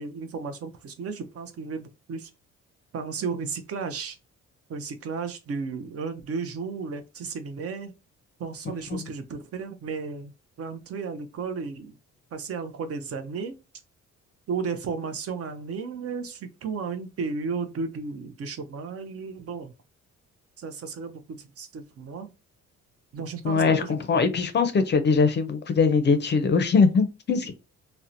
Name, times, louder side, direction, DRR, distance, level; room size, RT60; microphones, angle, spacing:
voice 1, 0.0-2.3 2.9-4.2 4.7-7.9 8.4-10.3 10.6-11.9 12.3-13.6 14.5-19.7 20.6-22.3 23.1-24.2, right 5 dB, 50° right, 0.5 m, -34 dB
voice 2, 23.4-27.5, left 5 dB, 35° left, 0.5 m, -22 dB
2.7 x 2.1 x 2.5 m
cardioid pair, 90°, 30 cm